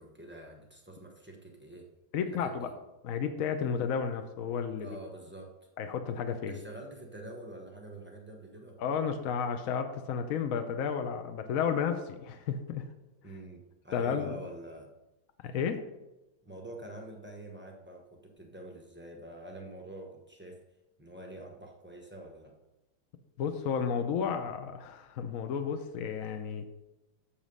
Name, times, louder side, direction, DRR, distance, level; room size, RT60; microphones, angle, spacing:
voice 1, 0.0-1.9 2.3-2.8 4.8-5.7 6.5-9.0 13.2-14.9 16.4-20.6 21.0-22.6, right 1 dB, 15° right, 0 dB, 0.3 m, -46 dB
voice 2, 2.1-2.7 3.0-5.0 5.8-6.6 8.8-12.8 13.9-14.4 15.4-15.8 23.4-26.7, left 7 dB, 70° left, 7 dB, 0.8 m, -32 dB
7.2 x 6.7 x 5.4 m, 0.97 s
omnidirectional pair, 2.2 m